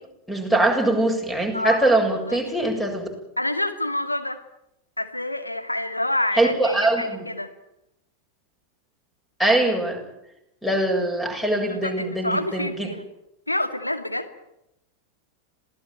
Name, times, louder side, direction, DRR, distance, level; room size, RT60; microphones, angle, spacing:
voice 1, 0.3-3.1 6.4-7.2 9.4-10.0 10.6-12.9, right 2 dB, 5° left, 5 dB, 7.5 m, -22 dB
voice 2, 1.5-2.0 2.3-2.4 3.4-4.4 5.0-7.5 11.6-13.0 13.5-14.3, left 1 dB, 85° left, 7 dB, 2.4 m, -27 dB
27.0 x 17.5 x 9.1 m, 0.85 s
figure-of-eight pair, 90°, 0 cm